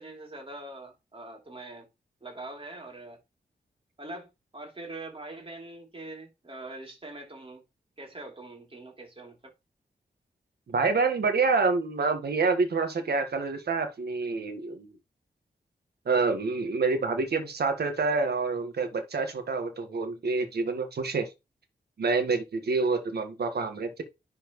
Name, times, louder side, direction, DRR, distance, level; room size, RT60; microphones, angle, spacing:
voice 1, 0.0-1.9 2.2-3.2 4.0-7.6 8.0-9.5, right 2 dB, 35° right, 3.2 m, -43 dB
voice 2, 10.7-14.9 16.0-21.3 22.0-24.0, right 4 dB, 75° right, 1.5 m, -27 dB
10.5 x 4.4 x 3.1 m
cardioid pair, 55°, 17 cm